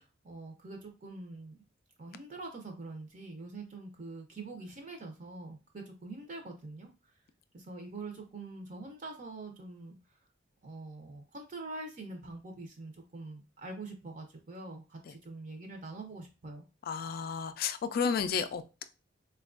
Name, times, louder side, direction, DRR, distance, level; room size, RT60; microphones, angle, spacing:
voice 1, 0.0-1.6 2.0-6.9 7.5-10.0 10.6-16.7, right 2 dB, 45° right, 0.6 m, -44 dB
voice 2, 16.9-18.8, left 6 dB, 50° left, 0.3 m, -32 dB
4.2 x 2.3 x 2.4 m
head